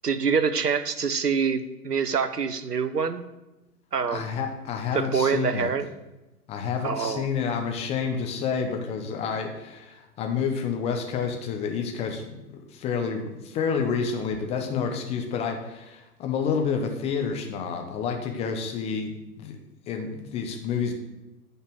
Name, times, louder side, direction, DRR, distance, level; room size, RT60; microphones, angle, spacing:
voice 1, 0.0-3.2 3.9-4.3 4.9-5.9 6.8-7.3, right 6 dB, 80° right, 11 dB, 1.0 m, -25 dB
voice 2, 4.1-5.7 6.5-19.6 19.9-20.9, left 6 dB, 15° left, 4 dB, 1.0 m, -29 dB
9.4 x 5.6 x 6.4 m, 1.0 s
figure-of-eight pair, 125°, 46 cm